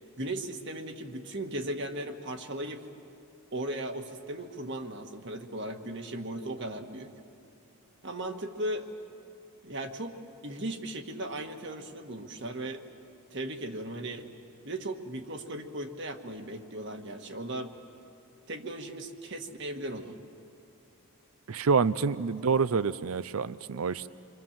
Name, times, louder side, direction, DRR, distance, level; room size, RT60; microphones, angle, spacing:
voice 1, 0.2-2.9 3.5-7.1 8.0-8.9 9.6-10.2 10.4-12.9 13.3-14.3 14.6-17.8 18.5-20.2 22.4-22.5, right 1 dB, 55° right, 4 dB, 1.6 m, -37 dB
voice 2, 21.5-24.1, right 5 dB, 70° right, 16 dB, 0.5 m, -27 dB
28.5 x 24.5 x 7.4 m, 2.5 s
head